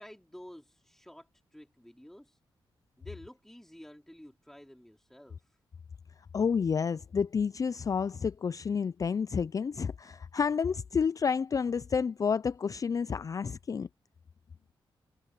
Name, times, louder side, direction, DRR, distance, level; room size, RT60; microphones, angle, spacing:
voice 1, 0.0-2.4 3.0-5.6, equal, 5° left, 3.0 m, -51 dB
voice 2, 6.3-13.9, left 6 dB, 40° left, 0.3 m, -30 dB
cardioid pair, 90°, 9 cm